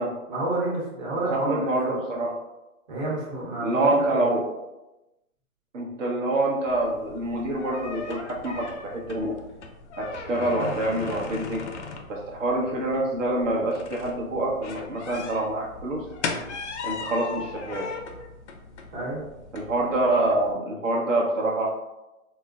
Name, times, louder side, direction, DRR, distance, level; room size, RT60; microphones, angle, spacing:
voice 1, 0.3-2.0 2.9-3.9 4.1-4.2 18.9-19.2, right 2 dB, 30° right, -7 dB, 1.1 m, -29 dB
voice 2, 1.2-2.4 3.6-4.5 5.7-9.3 10.0-11.6 12.1-16.1 16.8-17.9 19.5-21.7, right 2 dB, 60° right, -2 dB, 1.0 m, -26 dB
sound 1, 6.7-20.5, left 4 dB, 55° left, 0.5 m, -38 dB
4.0 x 2.0 x 2.4 m, 0.99 s
hypercardioid pair, 150°, 43 cm